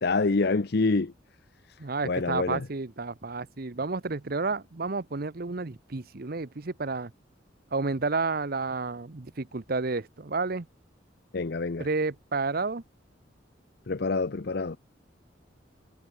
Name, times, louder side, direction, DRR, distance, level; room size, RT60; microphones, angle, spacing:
voice 1, 0.0-1.1 2.0-2.6 11.3-11.9 13.9-14.8, left 3 dB, 60° left, 0.7 m, -26 dB
voice 2, 1.8-7.1 7.7-10.7 11.8-12.8, right 3 dB, 50° right, 0.9 m, -31 dB
head